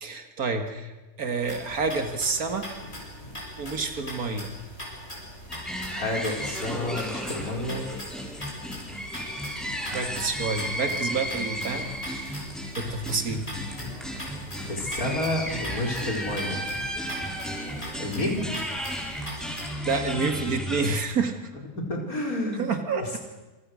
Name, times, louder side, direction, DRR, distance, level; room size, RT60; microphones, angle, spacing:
voice 1, 0.0-2.7 3.6-4.5 9.9-11.9 12.2-12.5 12.8-13.5 19.9-21.3 22.6-23.2, right 4 dB, 85° right, 6 dB, 2.5 m, -28 dB
sound 1, 1.4-19.6, equal, 45° left, 7.4 m, -41 dB
sound 2, 5.5-20.9, equal, ahead, 5.3 m, -34 dB
voice 2, 5.9-7.8 14.6-16.7 18.0-18.6 21.8-22.7, left 1 dB, 80° left, 0 dB, 5.3 m, -30 dB
27.0 x 25.0 x 6.4 m, 1.2 s
omnidirectional pair, 1.5 m